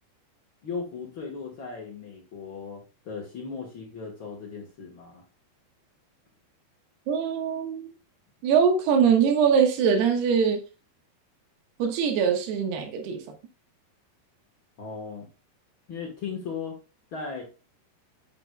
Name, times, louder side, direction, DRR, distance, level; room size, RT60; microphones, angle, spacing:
voice 1, 0.6-5.2 14.8-15.3 15.9-16.8 17.1-17.4, left 5 dB, 80° left, 0 dB, 1.1 m, -37 dB
voice 2, 7.1-7.9 8.4-10.6 11.8-13.2, right 7 dB, 80° right, 4 dB, 3.4 m, -22 dB
9.4 x 8.0 x 2.3 m, 0.33 s
omnidirectional pair, 4.7 m